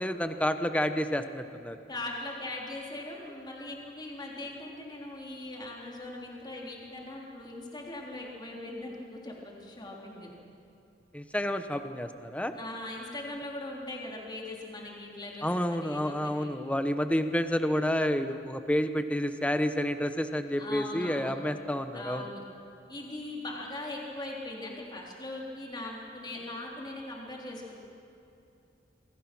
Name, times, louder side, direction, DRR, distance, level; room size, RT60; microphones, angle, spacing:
voice 1, 0.0-1.8 11.1-12.5 15.4-22.2, equal, 10° left, 8 dB, 1.0 m, -29 dB
voice 2, 1.9-10.3 12.5-16.5 20.6-21.4 21.9-22.4 22.9-27.8, left 2 dB, 25° left, -2 dB, 3.7 m, -40 dB
27.5 x 24.0 x 6.2 m, 2.7 s
head